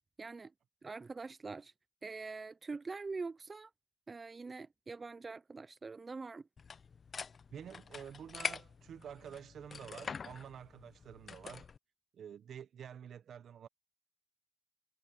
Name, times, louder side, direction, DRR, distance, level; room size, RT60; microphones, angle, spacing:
voice 1, 0.2-0.5 0.8-1.7 2.0-3.7 4.1-6.4, right 4 dB, 35° right, 0.3 m, -44 dB
sound 1, 6.6-11.8, left 6 dB, 50° left, 0.3 m, -45 dB
voice 2, 7.5-11.7 12.1-13.7, right 8 dB, 70° right, 0.8 m, -49 dB
cardioid pair, 85°, 0 cm